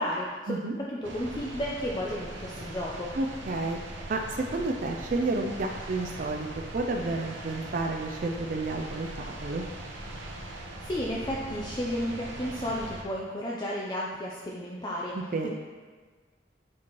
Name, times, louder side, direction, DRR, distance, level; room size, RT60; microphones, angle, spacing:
voice 1, 0.0-3.1 10.8-15.2 15.4-15.5, equal, 25° left, -4 dB, 0.5 m, -33 dB
sound 1, 1.0-13.0, right 1 dB, 85° right, 0.9 m, -41 dB
voice 2, 3.2-3.8 4.1-9.6 15.1-15.5, right 2 dB, 45° right, 3 dB, 0.4 m, -31 dB
8.5 x 4.4 x 3.0 m, 1.5 s
head